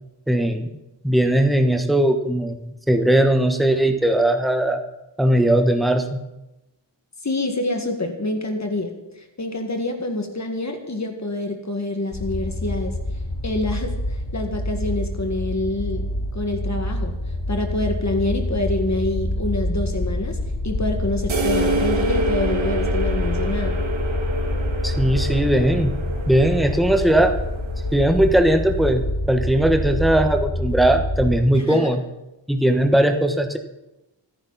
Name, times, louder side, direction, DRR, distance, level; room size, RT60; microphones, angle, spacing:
voice 1, 0.3-0.7 1.0-4.8 5.2-6.2 24.8-25.9 26.3-27.3 27.9-29.0 29.3-32.0 32.5-33.6, right 1 dB, ahead, 5 dB, 1.2 m, -19 dB
voice 2, 7.2-13.0 13.4-17.2 17.5-20.4 20.6-23.8 31.5-31.9, left 2 dB, 35° left, 4 dB, 1.9 m, -27 dB
sound 1, 12.1-31.4, left 1 dB, 65° left, 2.2 m, -26 dB
sound 2, 21.3-28.8, right 2 dB, 85° right, 2.1 m, -28 dB
25.5 x 10.0 x 4.1 m, 0.95 s
wide cardioid pair, 100°, 45 cm